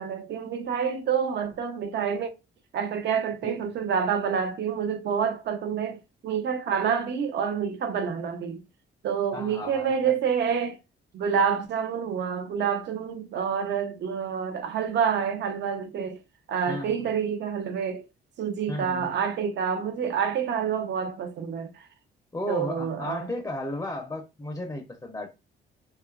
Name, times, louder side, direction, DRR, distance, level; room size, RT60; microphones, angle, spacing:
voice 1, 0.0-2.3 2.7-8.6 9.0-10.8 11.1-16.2 16.5-18.0 18.4-21.9 22.5-23.3, right 7 dB, 60° right, 0.6 m, -28 dB
voice 2, 9.3-10.1 16.7-17.1 18.7-19.1 22.3-25.3, left 1 dB, 15° left, 0.5 m, -34 dB
2.7 x 2.3 x 2.3 m
cardioid pair, 90°, 20 cm